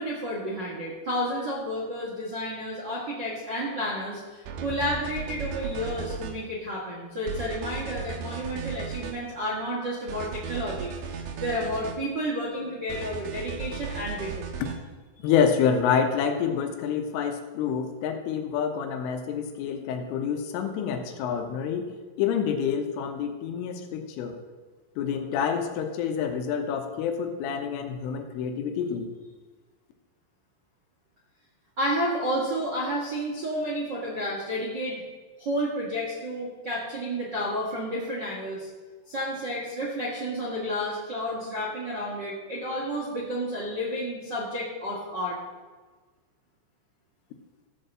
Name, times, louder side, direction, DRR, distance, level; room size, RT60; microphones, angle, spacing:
voice 1, 0.0-14.5 31.8-35.0 35.4-38.7 39.1-45.4, equal, 55° right, -5 dB, 1.2 m, -31 dB
sound 1, 4.5-6.3 7.3-9.2 10.1-12.0 12.9-14.8, right 6 dB, 70° right, 2.4 m, -36 dB
voice 2, 15.2-21.9 22.2-24.4 25.0-29.1, left 7 dB, 85° left, 5 dB, 3.6 m, -27 dB
14.5 x 5.6 x 7.4 m, 1.4 s
omnidirectional pair, 5.7 m